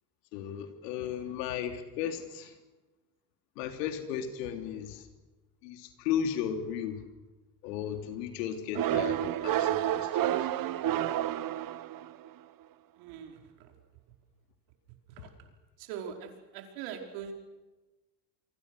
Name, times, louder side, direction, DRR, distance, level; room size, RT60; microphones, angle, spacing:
voice 1, 0.3-2.5 3.6-5.1 5.6-7.0 7.6-10.5, left 9 dB, 70° left, 6 dB, 3.4 m, -35 dB
voice 2, 0.9-1.4 13.0-13.8 15.1-15.3 15.8-17.3, right 8 dB, 65° right, 3 dB, 5.2 m, -43 dB
sound 1, 8.7-12.3, right 12 dB, 40° right, 1.4 m, -30 dB
29.0 x 24.0 x 6.5 m, 1.1 s
hypercardioid pair, 90°, 50 cm